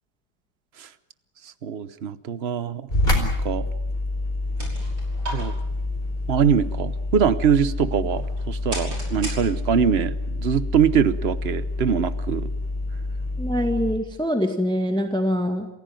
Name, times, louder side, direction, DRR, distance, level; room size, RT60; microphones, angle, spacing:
voice 1, 1.4-3.7 5.3-5.5 6.3-12.5, right 7 dB, 40° right, 15 dB, 1.0 m, -23 dB
sound 1, 2.9-13.9, left 2 dB, 20° left, 4.8 m, -27 dB
sound 2, 4.2-10.0, right 2 dB, 70° right, 6.6 m, -39 dB
voice 2, 13.4-15.7, equal, ahead, 6 dB, 1.8 m, -24 dB
28.0 x 16.0 x 9.3 m, 0.89 s
omnidirectional pair, 2.1 m